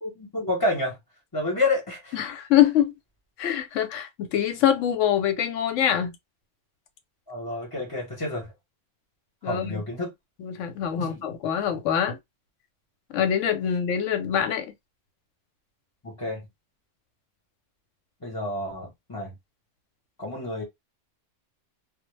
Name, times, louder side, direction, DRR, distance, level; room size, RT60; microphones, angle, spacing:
voice 1, 0.0-1.0 1.3-2.2 7.3-8.5 9.4-10.1 11.0-11.2 16.0-16.5 18.2-19.3 20.2-20.6, left 2 dB, 20° left, 0.8 m, -29 dB
voice 2, 2.1-2.9 3.4-6.1 9.4-9.8 10.4-12.2 13.1-14.7, left 10 dB, 80° left, 0.9 m, -24 dB
2.1 x 2.0 x 3.1 m
omnidirectional pair, 1.3 m